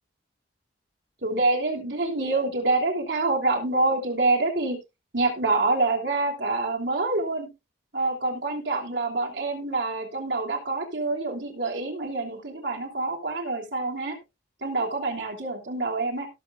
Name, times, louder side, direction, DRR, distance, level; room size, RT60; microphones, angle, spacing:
voice 1, 1.2-4.8 5.1-7.5 7.9-14.2 14.6-16.3, right 2 dB, 60° right, 0 dB, 3.1 m, -26 dB
18.0 x 7.0 x 2.4 m, 0.23 s
head